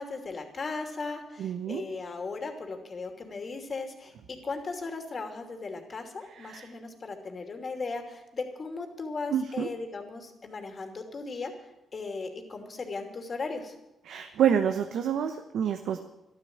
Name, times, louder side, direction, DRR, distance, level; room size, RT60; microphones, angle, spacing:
voice 1, 0.0-13.8, left 3 dB, 45° left, 4 dB, 2.8 m, -37 dB
voice 2, 1.4-1.8 6.4-6.7 9.3-9.7 14.1-16.0, right 8 dB, 80° right, 7 dB, 1.0 m, -28 dB
12.5 x 12.5 x 7.8 m, 0.91 s
cardioid pair, 80°, 0 cm